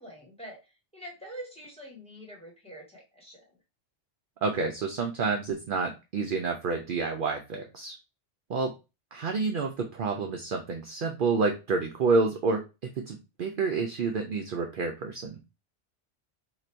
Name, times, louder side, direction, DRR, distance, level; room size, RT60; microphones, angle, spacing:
voice 1, 0.0-3.4, right 1 dB, 5° left, -3 dB, 1.3 m, -45 dB
voice 2, 4.4-7.9 8.5-8.7 9.1-12.6 13.0-15.4, right 4 dB, 60° right, 3 dB, 0.6 m, -29 dB
2.9 x 2.5 x 4.3 m, 0.28 s
omnidirectional pair, 1.2 m